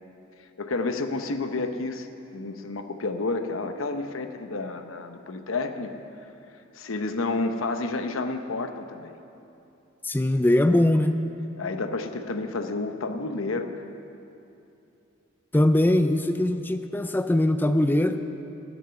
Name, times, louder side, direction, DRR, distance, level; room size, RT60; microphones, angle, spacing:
voice 1, 0.6-2.1 2.3-5.9 6.8-9.1 11.6-13.9, left 3 dB, 75° left, 7 dB, 0.9 m, -30 dB
voice 2, 10.0-11.2 15.5-18.2, left 1 dB, 10° left, 8 dB, 0.4 m, -21 dB
13.5 x 7.3 x 9.6 m, 2.8 s
head